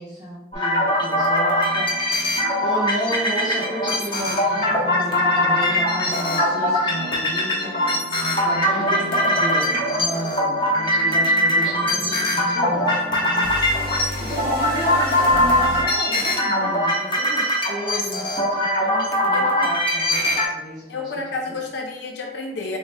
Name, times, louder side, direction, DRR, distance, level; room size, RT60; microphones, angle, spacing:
voice 1, 0.0-2.0 2.6-7.9 8.2-13.3 14.2-21.1, equal, 20° right, -9 dB, 0.7 m, -32 dB
sound 1, 0.5-20.5, left 1 dB, 25° left, 0.7 m, -21 dB
sound 2, 0.9-15.8, equal, 55° right, 0.7 m, -35 dB
voice 2, 19.3-19.7 20.9-22.8, left 3 dB, 75° left, 1 dB, 0.5 m, -30 dB
3.5 x 2.0 x 3.2 m, 0.90 s
head